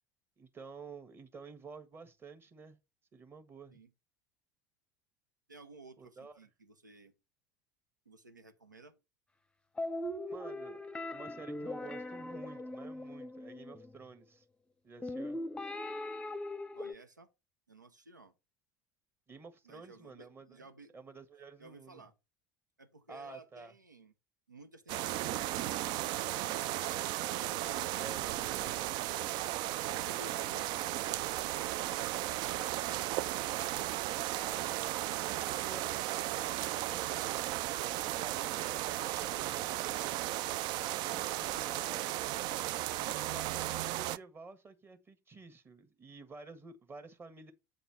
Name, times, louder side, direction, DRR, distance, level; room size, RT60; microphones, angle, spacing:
voice 1, 0.4-2.8 3.1-3.8 6.0-6.4 10.3-10.8 11.1-14.4 14.8-15.4 19.3-20.6 20.9-22.0 23.1-23.7 28.0-28.7 34.3-40.4 40.9-42.3 42.9-47.5, right 4 dB, 25° right, 1.5 m, -51 dB
voice 2, 5.5-7.2 8.0-9.0 16.7-17.3 17.7-18.3 19.6-20.9 21.6-22.2 22.8-24.1 24.5-25.6 27.3-29.3, right 2 dB, 90° right, 0.9 m, -56 dB
sound 1, 9.8-14.0 15.0-16.9, left 1 dB, 10° left, 0.7 m, -40 dB
sound 2, 24.9-44.2, right 15 dB, 50° right, 0.4 m, -35 dB
8.4 x 3.9 x 6.0 m
figure-of-eight pair, 70°, 10 cm